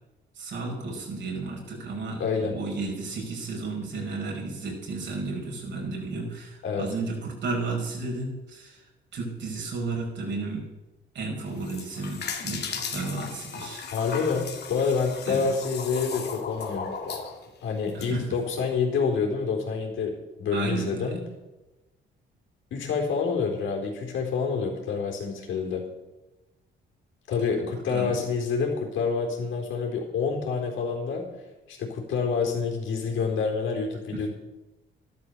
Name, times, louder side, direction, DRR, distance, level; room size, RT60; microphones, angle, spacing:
voice 1, 0.3-8.8 9.1-10.6 11.1-13.8 15.3-15.5 17.9-18.3 20.5-21.1 27.9-28.2 34.1-34.2, right 3 dB, 65° right, 0 dB, 5.7 m, -33 dB
voice 2, 2.2-2.5 6.6-6.9 13.9-16.9 17.6-20.1 20.4-21.2 22.7-25.8 27.3-31.2 31.7-34.3, left 5 dB, 80° left, 1 dB, 4.3 m, -27 dB
sound 1, 11.5-18.1, left 5 dB, 55° left, 2.4 m, -36 dB
13.0 x 12.0 x 6.8 m, 1.0 s
cardioid pair, 90°, 20 cm